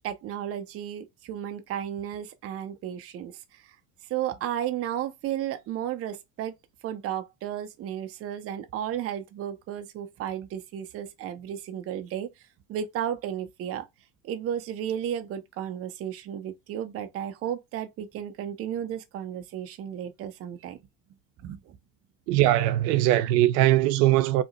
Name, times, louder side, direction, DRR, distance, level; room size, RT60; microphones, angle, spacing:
voice 1, 0.0-3.7 4.1-6.5 6.8-12.3 12.7-13.9 14.2-20.8 21.4-21.8, right 10 dB, 30° right, 0.5 m, -33 dB
voice 2, 22.3-24.4, right 14 dB, 85° right, 0.6 m, -21 dB
2.9 x 2.0 x 3.8 m
supercardioid pair, 115°, 48 cm